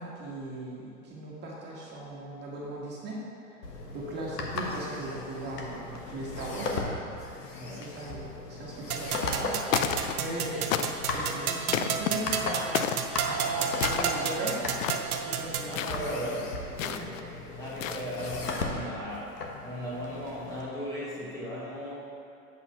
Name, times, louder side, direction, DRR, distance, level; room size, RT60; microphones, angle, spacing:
voice 1, 0.0-3.2 3.9-6.9 7.4-10.7 11.1-12.9 13.3-14.7 14.9-16.1 16.8-17.0, right 1 dB, 20° right, -5 dB, 1.5 m, -38 dB
sound 1, 3.6-20.6, left 3 dB, 90° left, 1.3 m, -37 dB
voice 2, 7.5-7.9 15.6-21.9, equal, 5° left, -9 dB, 1.0 m, -37 dB
sound 2, 8.9-15.7, right 7 dB, 70° right, 0.8 m, -32 dB
sound 3, 9.1-9.4 9.7-10.4 10.7-11.2 11.7-12.1 12.7-13.1 13.7-14.3 14.7-15.1 15.7-16.0 16.8-17.2 17.7-18.3, left 9 dB, 60° left, 0.5 m, -31 dB
8.1 x 4.1 x 5.7 m, 2.6 s
hypercardioid pair, 135°, 45 cm